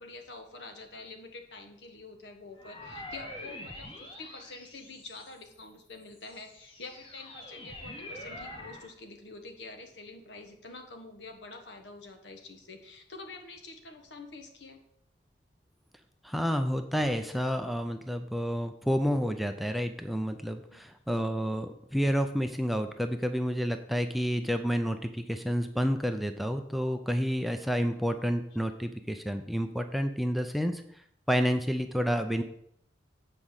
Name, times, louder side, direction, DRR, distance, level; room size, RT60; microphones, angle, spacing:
voice 1, 0.0-14.8 20.7-20.9, left 3 dB, 70° left, 5 dB, 1.5 m, -47 dB
sound 1, 2.6-5.5 6.1-8.9, left 1 dB, 30° left, 1.6 m, -45 dB
voice 2, 16.2-30.8 31.3-32.4, equal, ahead, 7 dB, 0.5 m, -29 dB
8.2 x 5.1 x 7.3 m, 0.72 s
head